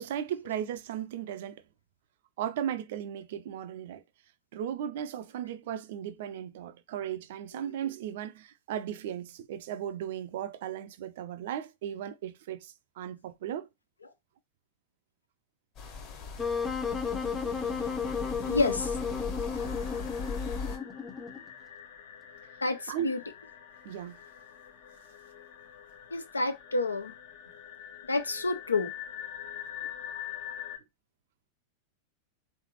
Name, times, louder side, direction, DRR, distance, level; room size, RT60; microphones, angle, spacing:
voice 1, 0.0-1.6 2.4-4.0 4.5-13.7 22.9-23.1 23.8-24.2, right 10 dB, 55° right, 0.4 m, -36 dB
sound 1, 15.8-20.8, left 4 dB, 35° left, 1.3 m, -39 dB
Wind instrument woodwind instrument, 16.4-21.5, left 5 dB, 15° left, 0.7 m, -33 dB
voice 2, 18.5-19.0 22.6-23.2 26.1-27.1 28.0-28.9, left 3 dB, 80° left, 0.6 m, -29 dB
sound 2, 19.5-30.8, left 10 dB, 55° left, 0.8 m, -45 dB
3.7 x 3.3 x 2.9 m
figure-of-eight pair, 90°, 0 cm